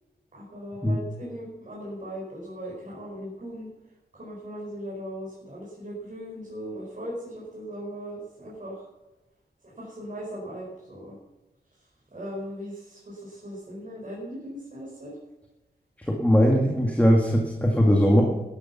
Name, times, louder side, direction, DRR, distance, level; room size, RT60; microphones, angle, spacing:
voice 1, 0.3-3.7 4.1-8.8 9.8-11.2 12.1-15.1, equal, 45° right, -5 dB, 5.3 m, -38 dB
voice 2, 16.0-18.2, equal, 10° left, 0 dB, 2.0 m, -20 dB
13.0 x 11.0 x 5.9 m, 1.0 s
wide cardioid pair, 115°, 17 cm